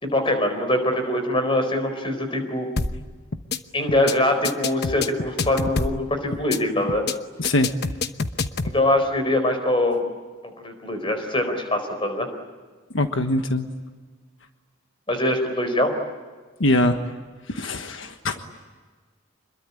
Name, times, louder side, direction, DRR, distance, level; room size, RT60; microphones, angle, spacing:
voice 1, 0.0-2.7 3.7-7.1 8.6-10.0 10.4-12.3 15.1-15.9, left 1 dB, 25° left, 6 dB, 4.4 m, -23 dB
sound 1, 2.8-3.0 3.3-3.6 3.9-4.1 4.4-6.0 6.3-6.6 6.9-7.1 7.4-8.8, left 3 dB, 50° left, 1.1 m, -26 dB
voice 2, 7.4-7.8 12.9-13.7 16.6-17.0 17.5-18.4, left 1 dB, 70° left, 6 dB, 1.4 m, -22 dB
26.5 x 22.0 x 9.9 m, 1.4 s
head